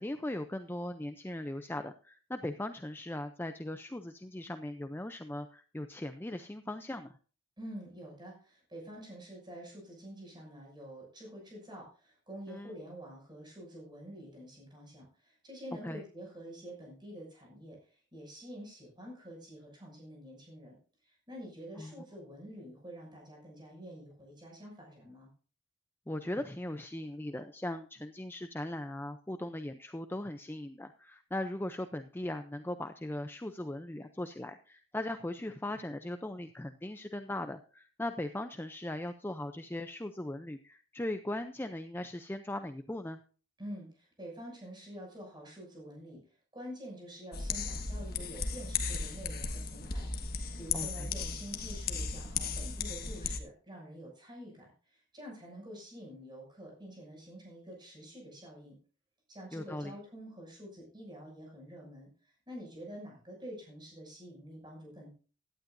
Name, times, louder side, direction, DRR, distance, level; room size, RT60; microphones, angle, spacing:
voice 1, 0.0-7.2 12.5-12.7 15.8-16.0 21.8-21.9 26.1-43.2 50.7-51.1 59.5-60.0, left 1 dB, 10° left, 8 dB, 0.5 m, -39 dB
voice 2, 7.6-20.7 21.0-25.3 43.6-58.8 59.3-65.1, equal, 20° right, -1 dB, 6.6 m, -48 dB
sound 1, 47.3-53.4, left 5 dB, 45° left, 1.4 m, -36 dB
17.0 x 11.5 x 2.6 m, 0.37 s
head